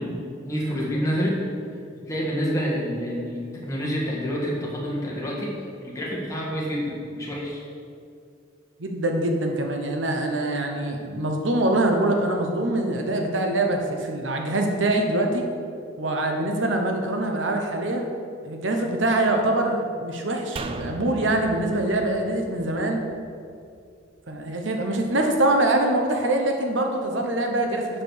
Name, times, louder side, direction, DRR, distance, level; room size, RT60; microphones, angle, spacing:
voice 1, 0.0-1.4 2.1-5.6 5.8-7.6, equal, 15° left, -5 dB, 1.6 m, -28 dB
voice 2, 8.8-15.5 16.0-18.0 18.4-23.0 24.3-28.0, right 1 dB, 80° right, 3 dB, 1.0 m, -24 dB
sound 1, 20.6-23.9 24.2-24.3, right 3 dB, 30° right, 0.4 m, -37 dB
7.4 x 5.1 x 6.4 m, 2.4 s
head